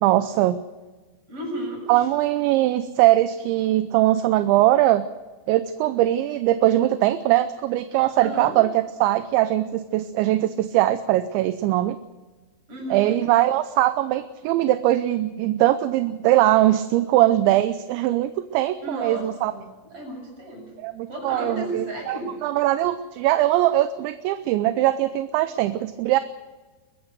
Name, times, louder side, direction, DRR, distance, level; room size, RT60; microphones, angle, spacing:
voice 1, 0.0-0.6 1.9-5.1 5.5-12.0 12.9-19.5 20.8-26.2, right 14 dB, 80° right, 11 dB, 2.9 m, -21 dB
voice 2, 1.3-2.1 8.2-8.5 12.7-13.1 18.8-19.6 19.9-20.6 21.1-22.3, right 1 dB, 30° right, 1 dB, 7.8 m, -33 dB
22.5 x 14.0 x 8.1 m, 1.3 s
omnidirectional pair, 5.5 m